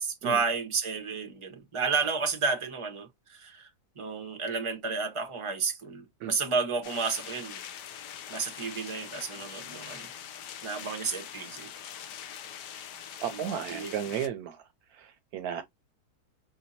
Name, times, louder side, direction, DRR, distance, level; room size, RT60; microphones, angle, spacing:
voice 1, 0.0-3.7 4.0-7.6 8.3-10.1 10.6-11.7 13.3-13.9, right 4 dB, 20° right, 1.0 m, -31 dB
sound 1, 6.8-14.3, left 9 dB, 90° left, 1.4 m, -43 dB
voice 2, 13.2-14.6 14.9-15.6, right 9 dB, 75° right, 1.0 m, -34 dB
5.7 x 2.7 x 2.7 m
omnidirectional pair, 1.7 m